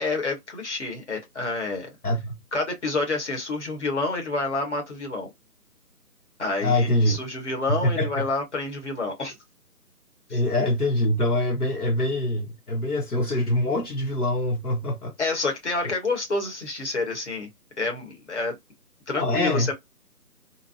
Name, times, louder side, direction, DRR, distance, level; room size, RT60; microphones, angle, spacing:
voice 1, 0.0-1.9 2.5-5.3 6.4-9.4 10.3-10.4 15.2-17.5 17.8-18.5 19.1-19.7, left 3 dB, 45° left, 1.4 m, -28 dB
voice 2, 2.0-2.4 6.6-7.2 7.7-8.2 10.3-15.1 19.1-19.7, left 1 dB, 65° left, 1.1 m, -24 dB
2.8 x 2.5 x 2.7 m
figure-of-eight pair, 155°, 48 cm